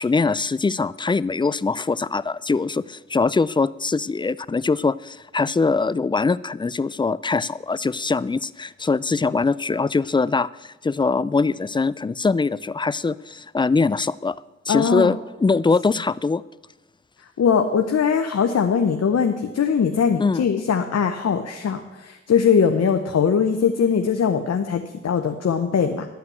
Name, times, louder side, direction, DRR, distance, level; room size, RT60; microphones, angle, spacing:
voice 1, 0.0-14.4 14.7-16.4 20.2-20.4, left 4 dB, 15° left, 19 dB, 0.3 m, -22 dB
voice 2, 14.7-15.1 17.4-26.1, left 6 dB, 55° left, 6 dB, 0.8 m, -21 dB
11.0 x 5.7 x 7.8 m, 1.1 s
supercardioid pair, 40°, 30 cm